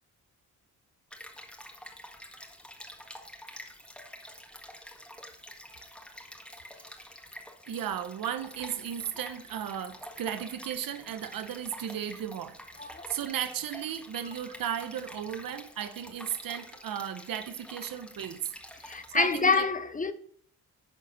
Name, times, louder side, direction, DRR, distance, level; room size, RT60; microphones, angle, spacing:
Stream, 1.1-19.6, equal, 5° left, 1.6 m, -48 dB
voice 1, 7.7-18.5 19.1-19.7, right 9 dB, 60° right, 0.8 m, -35 dB
voice 2, 12.8-13.1 18.8-20.1, left 4 dB, 20° left, 0.6 m, -27 dB
11.5 x 4.2 x 4.1 m
supercardioid pair, 55°, 39 cm